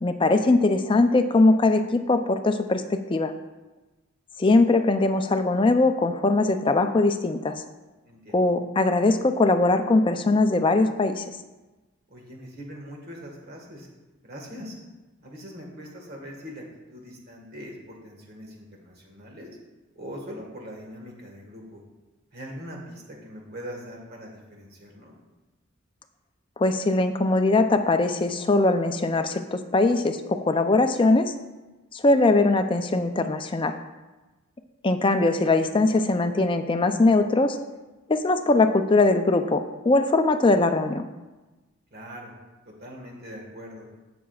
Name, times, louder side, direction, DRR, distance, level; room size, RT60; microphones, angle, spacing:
voice 1, 0.0-3.3 4.4-7.6 8.3-11.4 26.6-31.3 31.9-33.8 34.8-37.6 38.1-41.0, left 2 dB, 25° left, 8 dB, 0.4 m, -21 dB
voice 2, 8.0-8.5 12.1-13.9 14.2-14.7 15.2-19.5 19.9-21.8 22.3-25.1 41.9-42.3 42.6-43.9, equal, 45° right, 0 dB, 1.6 m, -41 dB
15.5 x 6.0 x 2.4 m, 1.1 s
head